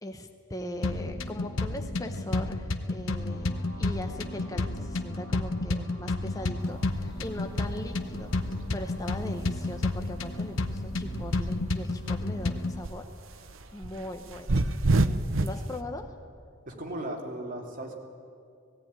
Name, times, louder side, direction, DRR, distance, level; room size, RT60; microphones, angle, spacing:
voice 1, 0.0-8.3 8.7-13.1 13.7-14.7 15.4-16.1, left 1 dB, 15° left, 4 dB, 0.8 m, -40 dB
sound 1, 0.8-12.8, left 2 dB, 75° left, 1.0 m, -31 dB
sound 2, 3.2-13.9, right 1 dB, 50° left, 2.1 m, -53 dB
sound 3, 6.6-11.9 12.2-15.7, right 2 dB, 75° right, 0.8 m, -31 dB
voice 2, 16.7-17.9, right 1 dB, 40° right, -1 dB, 2.9 m, -36 dB
17.5 x 16.5 x 9.6 m, 2.4 s
head